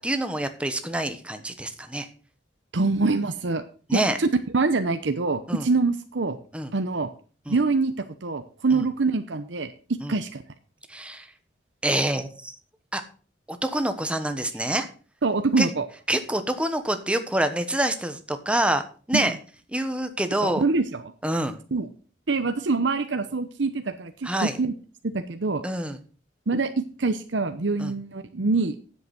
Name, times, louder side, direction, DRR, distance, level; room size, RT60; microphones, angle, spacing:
voice 1, 0.0-2.1 3.9-4.2 5.5-5.7 6.5-6.7 7.5-7.6 8.7-8.8 10.0-10.1 10.9-11.3 11.8-12.5 12.9-13.0 13.5-14.9 15.6-15.7 16.1-19.3 19.7-20.6 21.2-21.6 24.2-24.6 25.6-26.0 27.8-27.9, right 1 dB, 5° right, 8 dB, 1.1 m, -26 dB
voice 2, 2.7-3.6 3.9-6.4 6.7-7.1 7.5-7.9 8.2-9.7 10.1-10.4 15.2-15.9 19.1-19.3 20.4-21.1 21.7-21.9 22.3-24.7 25.0-25.6 26.5-28.7, right 3 dB, 75° right, 8 dB, 0.8 m, -25 dB
9.6 x 7.9 x 5.9 m, 0.39 s
head